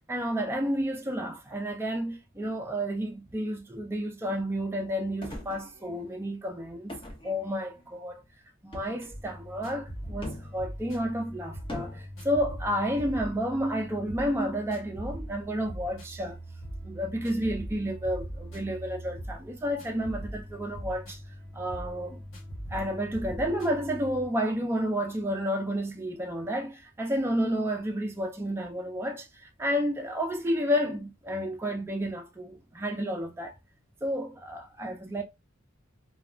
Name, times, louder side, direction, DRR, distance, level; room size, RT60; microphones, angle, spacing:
voice 1, 0.1-7.0 7.2-8.2 8.6-16.4 16.8-21.2 21.5-22.2 22.7-33.6 34.0-35.2, equal, 10° right, 0.4 m, -31 dB
sound 1, 5.2-6.1 6.9-7.9 8.7-9.2 10.2-10.6 11.7-12.0, left 1 dB, 25° left, 0.7 m, -41 dB
sound 2, 9.1-24.3, right 1 dB, 70° left, 1.2 m, -41 dB
3.2 x 2.2 x 2.4 m
head